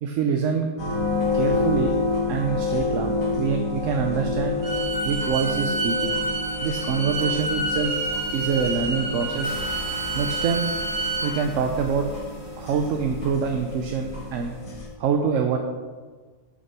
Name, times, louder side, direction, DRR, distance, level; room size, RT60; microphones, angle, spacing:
voice 1, 0.0-0.7 1.3-1.9 2.3-4.6 5.0-6.2 6.6-8.0 8.3-9.6 10.1-10.6 11.2-12.1 12.6-14.5 15.0-15.6, right 6 dB, 65° right, 4 dB, 0.9 m, -25 dB
sound 1, 0.8-14.9, left 3 dB, 65° left, 1.9 m, -29 dB
Bowed string instrument, 4.6-11.4, right 3 dB, 80° right, 2.0 m, -29 dB
sound 2, 9.4-14.9, left 1 dB, 85° left, 3.0 m, -44 dB
7.0 x 5.5 x 6.0 m, 1.4 s
omnidirectional pair, 1.5 m